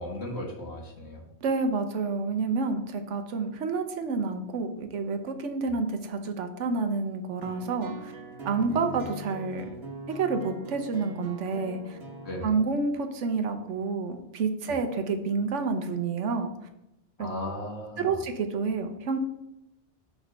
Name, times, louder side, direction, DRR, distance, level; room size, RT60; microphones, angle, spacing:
voice 1, 0.0-1.2 5.7-5.8 8.5-9.0 12.2-12.6 14.7-14.8 17.2-18.2, left 1 dB, 65° left, -1 dB, 1.8 m, -37 dB
voice 2, 1.4-8.1 8.4-9.7 10.1-12.0 12.4-16.5 17.2-17.3 18.0-19.2, right 4 dB, 85° right, 7 dB, 1.1 m, -29 dB
sound 1, 7.4-12.5, right 1 dB, 60° right, 1.4 m, -42 dB
6.2 x 3.9 x 6.2 m, 0.90 s
omnidirectional pair, 1.2 m